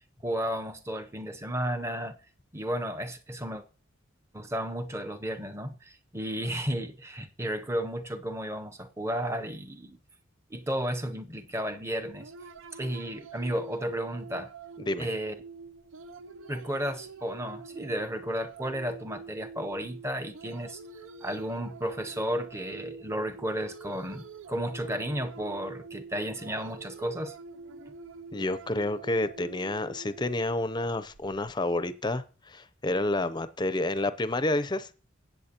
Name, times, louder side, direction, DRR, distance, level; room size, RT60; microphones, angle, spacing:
voice 1, 0.2-2.2 2.5-3.6 4.3-10.0 10.5-12.3 12.7-14.5 15.0-15.3 16.5-20.8 21.2-27.3, equal, 15° right, 0.7 m, -33 dB
sound 1, 12.0-31.5, right 5 dB, 80° right, 0.5 m, -46 dB
voice 2, 28.3-34.9, left 2 dB, 20° left, 0.6 m, -29 dB
15.5 x 8.4 x 2.9 m
head